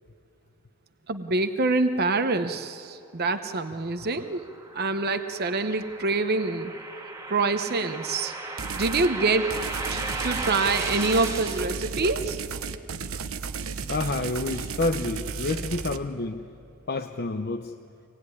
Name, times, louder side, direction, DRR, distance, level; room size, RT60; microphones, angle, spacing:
voice 1, 1.1-4.4 4.7-6.7 7.3-8.3 8.7-9.5 9.9-12.4, right 3 dB, 50° right, 7 dB, 1.0 m, -26 dB
sound 1, 3.8-11.6, right 3 dB, 15° right, 1.7 m, -35 dB
sound 2, 8.6-9.1 9.5-16.0, right 5 dB, 90° right, 1.1 m, -34 dB
voice 2, 13.9-16.4 16.9-17.7, left 2 dB, 50° left, 5 dB, 0.8 m, -29 dB
25.5 x 19.0 x 9.7 m, 2.5 s
head